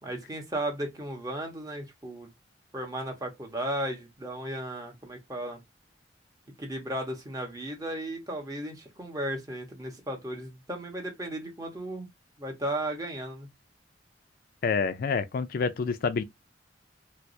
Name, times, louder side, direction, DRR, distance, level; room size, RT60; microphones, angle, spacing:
voice 1, 0.0-2.3 2.7-5.6 6.6-12.1 12.4-13.5, right 1 dB, 20° right, 1.0 m, -35 dB
voice 2, 14.6-16.2, left 5 dB, 55° left, 0.4 m, -27 dB
4.5 x 2.0 x 2.6 m
head